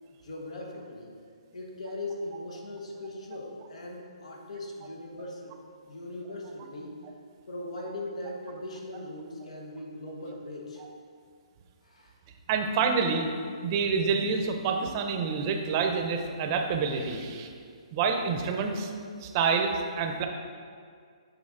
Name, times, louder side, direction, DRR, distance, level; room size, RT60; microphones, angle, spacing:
voice 1, 0.2-1.1 1.5-5.6 5.8-7.0 7.5-10.8 11.8-12.2, left 1 dB, 80° left, 0 dB, 1.2 m, -39 dB
voice 2, 12.5-13.3 13.6-17.5 17.9-18.9 19.2-20.3, right 5 dB, 35° right, 4 dB, 0.6 m, -27 dB
6.3 x 4.9 x 3.7 m, 2.2 s
hypercardioid pair, 150°, 3 cm